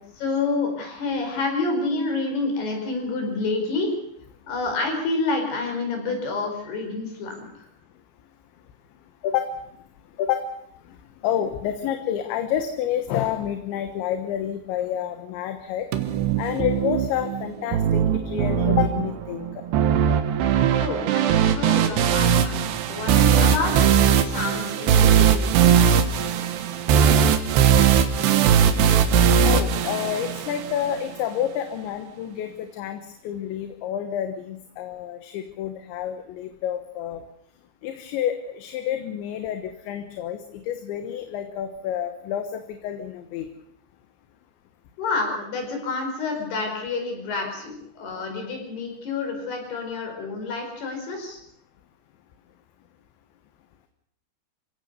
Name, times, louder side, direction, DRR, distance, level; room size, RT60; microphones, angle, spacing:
voice 1, 0.2-3.9 4.5-7.5 20.8-23.7 24.1-25.5 45.0-51.4, left 3 dB, 65° left, 3 dB, 6.8 m, -28 dB
voice 2, 9.2-9.5 10.2-10.5 11.2-15.9 16.4-19.5 29.4-37.2 37.8-43.5, left 10 dB, 80° left, 7 dB, 3.5 m, -29 dB
sound 1, 15.9-30.9, right 8 dB, 75° right, 3.4 m, -20 dB
26.5 x 17.0 x 6.8 m, 0.72 s
omnidirectional pair, 5.2 m